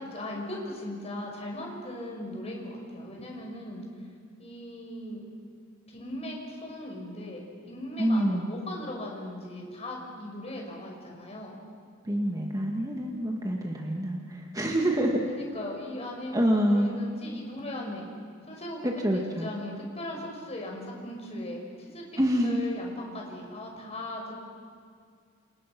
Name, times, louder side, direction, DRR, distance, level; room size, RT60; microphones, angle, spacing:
voice 1, 0.0-3.8 4.4-5.2 5.9-11.6 15.3-18.1 18.4-24.3, left 1 dB, 30° left, 0 dB, 6.1 m, -38 dB
voice 2, 8.0-8.5 12.0-15.2 16.3-16.9 18.8-19.5 22.2-22.7, equal, 15° right, 0 dB, 2.1 m, -26 dB
29.5 x 29.0 x 6.2 m, 2.2 s
head